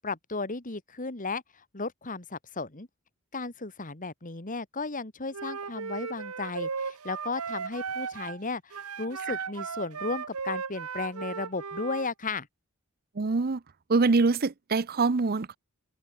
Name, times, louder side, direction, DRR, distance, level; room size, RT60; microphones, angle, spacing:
voice 1, 0.0-2.9 3.3-12.5, left 3 dB, 35° left, 2.2 m, -35 dB
Wind instrument woodwind instrument, 5.3-8.4 8.7-12.1, right 5 dB, 85° right, 1.2 m, -36 dB
voice 2, 13.2-13.6 13.9-15.6, right 3 dB, 45° right, 0.6 m, -24 dB
open air
head